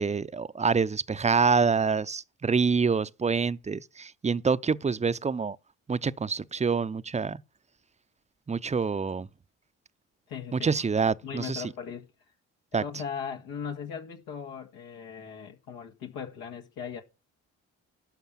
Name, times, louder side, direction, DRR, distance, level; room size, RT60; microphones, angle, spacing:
voice 1, 0.0-5.6 5.9-7.4 8.5-9.3 10.5-11.6 12.7-12.8, right 5 dB, 20° right, 0.6 m, -26 dB
voice 2, 10.3-10.7 11.2-12.1 12.7-17.0, left 7 dB, 85° left, 1.8 m, -38 dB
12.0 x 5.4 x 7.4 m
hypercardioid pair, 55°, 34 cm